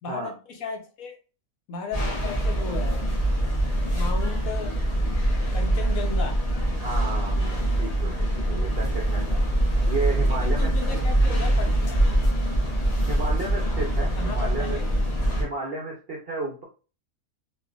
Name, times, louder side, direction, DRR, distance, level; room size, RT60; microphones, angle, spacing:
voice 1, 0.0-1.1 1.7-3.1 3.9-4.8 5.5-6.4 10.4-12.2 14.2-14.9, left 4 dB, 70° left, 3 dB, 1.1 m, -35 dB
sound 1, 1.9-15.4, right 1 dB, 35° left, 0.6 m, -24 dB
voice 2, 6.8-9.4 9.8-11.0 13.1-14.8 15.3-16.6, right 3 dB, 60° right, -2 dB, 0.6 m, -33 dB
3.2 x 2.5 x 2.3 m, 0.34 s
omnidirectional pair, 1.6 m